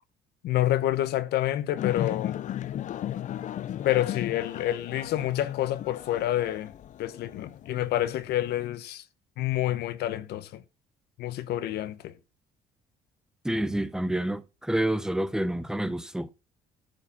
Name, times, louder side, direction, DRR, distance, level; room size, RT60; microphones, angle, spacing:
voice 1, 0.4-2.4 3.8-6.7 7.0-9.0 9.4-10.6 11.2-12.1, left 13 dB, 75° left, 1.0 m, -28 dB
sound 1, 1.8-8.7, left 11 dB, 45° left, 0.5 m, -35 dB
voice 2, 13.4-16.3, right 1 dB, 5° right, 0.8 m, -28 dB
11.5 x 4.9 x 7.1 m
cardioid pair, 110°, 17 cm